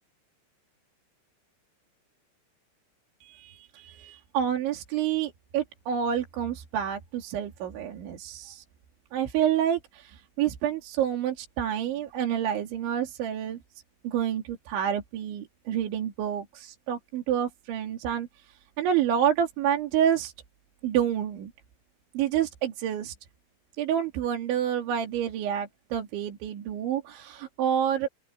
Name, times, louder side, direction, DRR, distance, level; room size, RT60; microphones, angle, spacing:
voice 1, 3.2-8.6 9.1-13.6 14.0-18.3 18.8-20.3 20.8-21.5 22.1-23.1 23.8-28.1, right 9 dB, 75° right, 4.9 m, -28 dB
open air
omnidirectional pair, 5.4 m